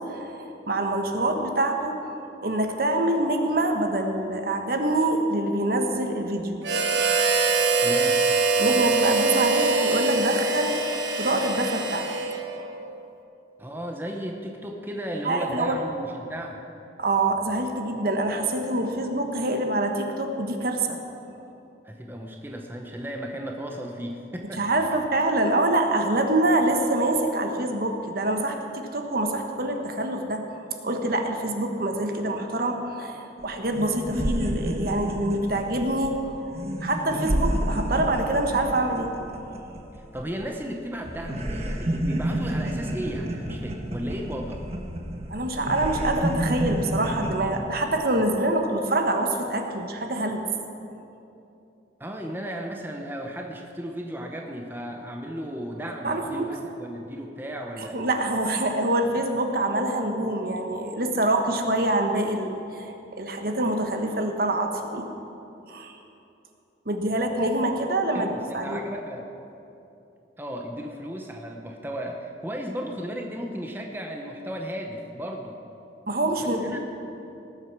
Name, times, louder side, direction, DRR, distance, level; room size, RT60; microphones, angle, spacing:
voice 1, 0.1-2.0 2.4-6.6 8.6-12.1 12.6-12.8 15.2-15.8 17.0-21.0 24.6-39.1 45.3-50.4 56.0-56.5 57.8-65.1 65.7-66.0 66.8-68.8 76.1-76.8, right 1 dB, 55° right, 4 dB, 1.2 m, -25 dB
Harmonica, 6.6-12.7, right 3 dB, 80° right, 1.3 m, -23 dB
voice 2, 7.8-8.2 13.6-16.6 21.8-25.0 40.1-44.6 52.0-58.0 68.1-69.2 70.4-75.6 76.4-76.8, equal, 10° right, 2 dB, 0.8 m, -35 dB
sound 1, 33.4-33.5 33.7-40.7 41.0-47.4, right 1 dB, 35° right, 1.2 m, -30 dB
19.0 x 8.0 x 6.1 m, 2.9 s
head